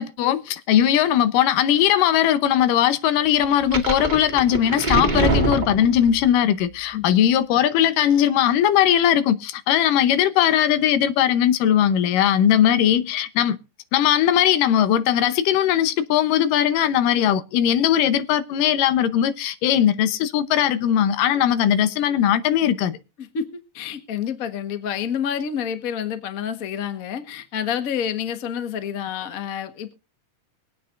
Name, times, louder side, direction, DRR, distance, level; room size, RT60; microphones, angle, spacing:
voice 1, 0.0-13.6 13.9-23.0, left 10 dB, 85° left, 2.6 m, -19 dB
sound 1, 3.4-6.3, right 3 dB, 20° right, 1.4 m, -24 dB
voice 2, 23.7-29.9, left 8 dB, 55° left, 0.9 m, -28 dB
23.5 x 8.7 x 2.5 m
omnidirectional pair, 3.7 m